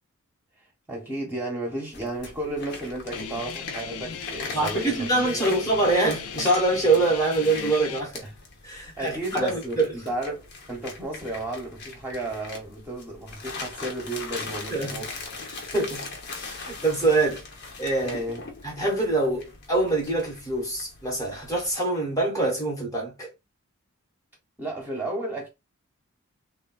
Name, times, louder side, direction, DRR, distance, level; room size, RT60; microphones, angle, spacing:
voice 1, 0.9-5.6 8.2-8.3 8.8-15.1 18.0-18.4 24.6-25.5, right 1 dB, 10° right, 0.8 m, -33 dB
sound 1, 1.9-21.7, left 3 dB, 50° left, 0.7 m, -40 dB
Guitar, 3.1-8.0, left 6 dB, 90° left, 0.5 m, -37 dB
voice 2, 4.5-8.2 8.6-9.9 14.7-15.0 15.5-16.1 16.5-17.4 17.8-18.2 18.6-23.3, right 2 dB, 15° left, 0.9 m, -25 dB
3.3 x 2.2 x 2.2 m
head